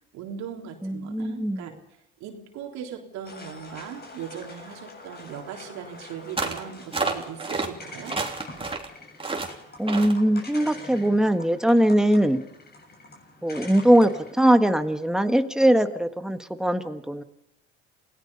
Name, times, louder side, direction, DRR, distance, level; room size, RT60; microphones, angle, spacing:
voice 1, 0.1-1.7 2.2-8.2, right 8 dB, 70° right, 2 dB, 3.6 m, -39 dB
voice 2, 0.8-1.7 9.8-12.4 13.4-17.2, right 1 dB, ahead, 8 dB, 1.6 m, -21 dB
sound 1, 3.2-14.3, left 2 dB, 35° left, 6.9 m, -45 dB
sound 2, 6.4-6.6 6.9-7.7 8.1-8.9 9.2-9.5 9.9-10.2, right 3 dB, 20° right, 3.4 m, -29 dB
28.5 x 17.5 x 5.5 m, 0.83 s
supercardioid pair, 75°, 29 cm